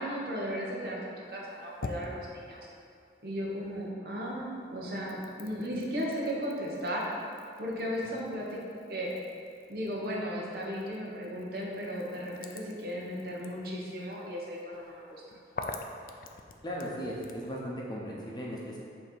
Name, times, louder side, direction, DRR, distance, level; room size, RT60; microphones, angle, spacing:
voice 1, 0.0-2.6 3.2-7.1 7.6-8.6 8.9-9.1 9.7-15.2, equal, 55° right, -3 dB, 1.0 m, -35 dB
sound 1, 1.2-3.9 4.2-17.5, left 3 dB, 50° left, 0.4 m, -47 dB
voice 2, 16.6-18.8, equal, 25° left, -4 dB, 0.8 m, -37 dB
7.5 x 2.9 x 4.4 m, 2.4 s
head